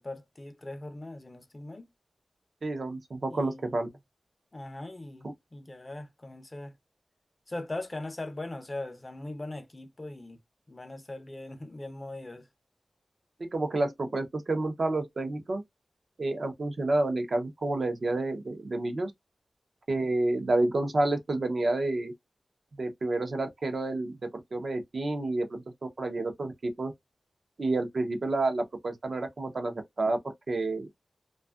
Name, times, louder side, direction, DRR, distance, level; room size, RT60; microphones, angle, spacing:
voice 1, 0.0-1.9 3.3-4.0 4.5-6.7 7.5-10.4 10.7-12.5, left 2 dB, 30° left, 0.6 m, -40 dB
voice 2, 2.6-3.9 5.2-5.3 13.4-15.6 16.2-19.1 19.9-22.1 22.8-25.6 26.0-26.5 26.8-26.9 27.6-30.2 30.5-30.9, right 2 dB, 60° right, 0.6 m, -29 dB
2.5 x 2.3 x 2.3 m
wide cardioid pair, 85°, 0 cm